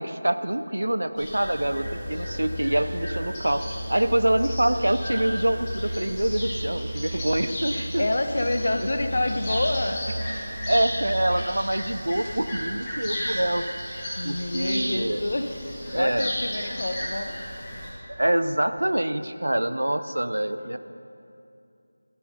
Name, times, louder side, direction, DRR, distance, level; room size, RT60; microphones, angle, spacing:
voice 1, 0.0-8.0 10.7-14.0 14.2-15.3 15.9-16.4 18.1-20.8, right 1 dB, 75° right, 11 dB, 0.5 m, -25 dB
sound 1, 1.2-17.9, equal, 20° left, 3.2 m, -35 dB
Musical instrument, 1.6-11.4, equal, 30° right, 0.9 m, -35 dB
voice 2, 7.7-10.0 13.9-15.6 15.9-17.3, left 1 dB, 55° left, 7 dB, 0.8 m, -28 dB
13.0 x 7.6 x 5.6 m, 2.6 s
figure-of-eight pair, 165°, 0 cm